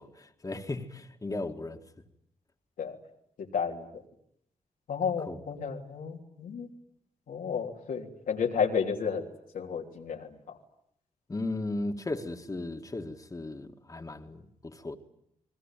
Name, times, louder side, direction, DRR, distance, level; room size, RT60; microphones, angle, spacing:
voice 1, 0.0-1.8 5.3-5.4 11.3-15.0, left 2 dB, 25° left, 2.1 m, -36 dB
voice 2, 3.5-4.0 4.9-6.7 7.3-9.3 9.5-10.6, left 6 dB, 85° left, 3.5 m, -32 dB
29.5 x 20.5 x 9.2 m
cardioid pair, 85°, 14 cm